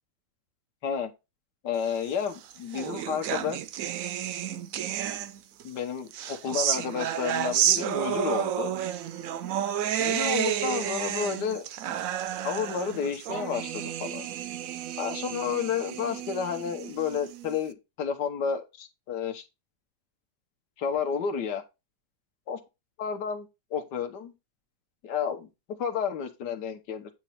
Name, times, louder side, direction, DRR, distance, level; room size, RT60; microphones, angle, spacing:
voice 1, 1.6-3.6 5.6-8.7 10.0-12.0 12.4-14.3 15.0-19.5 20.8-21.6 22.5-22.6 23.0-24.3 25.0-25.5 25.8-27.1, left 7 dB, 75° left, 1.6 m, -31 dB
sound 1, 2.2-5.6 6.1-17.6, right 10 dB, 70° right, 0.9 m, -31 dB
8.9 x 3.0 x 5.6 m
omnidirectional pair, 1.9 m